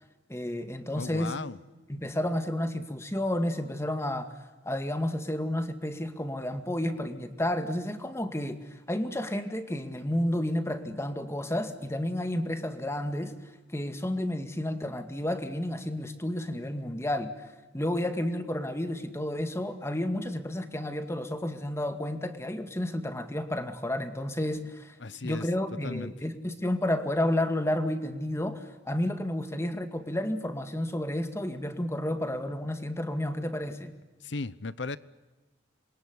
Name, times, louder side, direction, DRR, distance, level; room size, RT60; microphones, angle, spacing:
voice 1, 0.3-1.3 1.9-4.3 4.6-13.3 13.7-17.3 17.7-24.9 25.2-33.9, left 1 dB, 15° left, 7 dB, 2.1 m, -31 dB
voice 2, 0.9-1.6 25.0-25.5 25.8-26.1 34.2-35.0, left 3 dB, 85° left, 17 dB, 1.0 m, -36 dB
27.5 x 22.0 x 9.8 m, 1.2 s
head